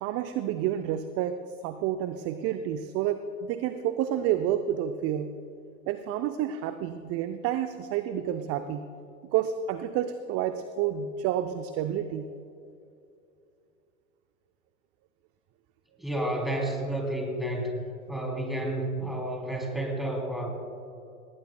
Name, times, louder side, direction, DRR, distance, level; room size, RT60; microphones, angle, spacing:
voice 1, 0.0-5.3 5.9-8.9 9.3-12.3, right 10 dB, 35° right, 9 dB, 0.6 m, -29 dB
voice 2, 16.0-17.8 18.1-20.5, right 1 dB, ahead, 0 dB, 3.3 m, -31 dB
18.5 x 18.5 x 2.3 m, 2.6 s
figure-of-eight pair, 85°, 43 cm